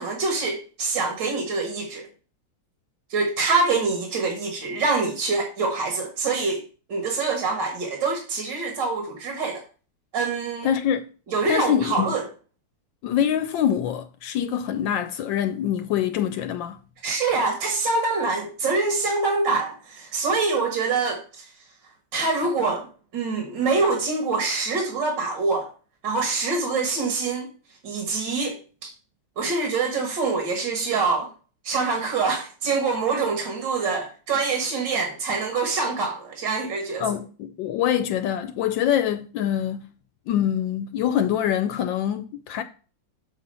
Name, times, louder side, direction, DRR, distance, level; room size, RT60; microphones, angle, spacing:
voice 1, 0.0-2.1 3.1-6.6 6.9-9.6 10.1-10.7 11.3-12.2 17.0-21.5 22.1-25.7 26.0-27.5 27.8-28.9 29.4-31.3 31.6-37.1, right 4 dB, 70° right, 2.1 m, -25 dB
voice 2, 10.6-11.0 11.5-12.2 13.0-16.8 37.0-39.9 40.3-42.6, left 10 dB, 85° left, 1.3 m, -24 dB
7.3 x 4.1 x 5.4 m
omnidirectional pair, 2.0 m